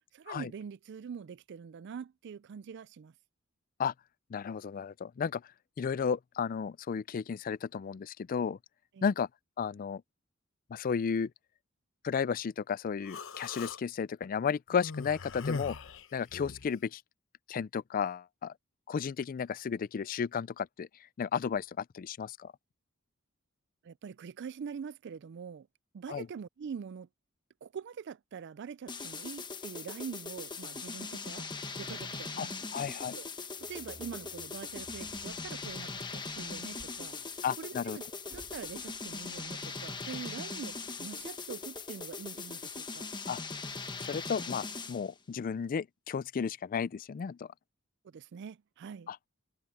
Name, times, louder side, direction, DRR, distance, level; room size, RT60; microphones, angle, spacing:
voice 1, 0.1-3.1 8.9-9.0 23.8-25.7 25.9-27.1 27.6-31.5 31.8-32.6 33.1-33.3 33.7-37.2 37.6-43.1 48.0-49.1, right 6 dB, 60° right, 0.4 m, -44 dB
voice 2, 4.3-5.4 5.8-8.6 9.0-9.3 9.6-10.0 10.7-11.3 12.0-15.8 16.1-17.0 17.5-18.5 18.9-20.9 21.2-22.5 26.1-26.3 32.4-32.5 32.7-33.1 37.4-38.0 43.3-43.4 44.0-47.5 49.1-49.2, left 6 dB, 40° left, 0.3 m, -33 dB
Human voice, 13.1-13.8 14.7-16.7, left 4 dB, 65° left, 0.9 m, -40 dB
sound 1, 28.9-45.1, left 4 dB, 20° left, 1.2 m, -40 dB
sound 2, 33.6-44.7, equal, 30° right, 4.4 m, -60 dB
head